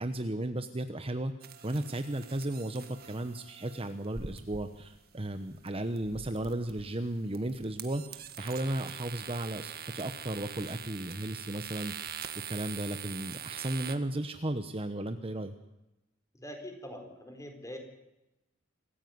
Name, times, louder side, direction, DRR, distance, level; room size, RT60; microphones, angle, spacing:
voice 1, 0.0-1.3 1.6-12.2 12.5-15.5, right 1 dB, 30° right, 9 dB, 1.1 m, -35 dB
sound 1, 1.4-13.9, right 8 dB, 50° right, 1.8 m, -44 dB
voice 2, 16.3-17.8, equal, 15° left, 4 dB, 4.7 m, -43 dB
26.0 x 15.0 x 9.5 m, 0.93 s
head